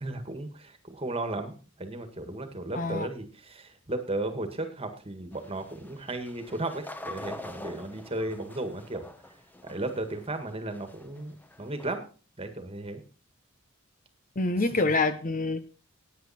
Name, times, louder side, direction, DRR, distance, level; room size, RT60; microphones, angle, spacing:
voice 1, 0.0-9.1 9.6-12.0 12.4-13.0, right 2 dB, 30° right, 8 dB, 1.8 m, -35 dB
voice 2, 2.7-3.1 14.4-15.6, left 3 dB, 40° left, 11 dB, 0.9 m, -26 dB
sound 1, 5.3-12.0, left 2 dB, 10° left, 1.0 m, -45 dB
16.5 x 9.6 x 4.3 m, 0.38 s
head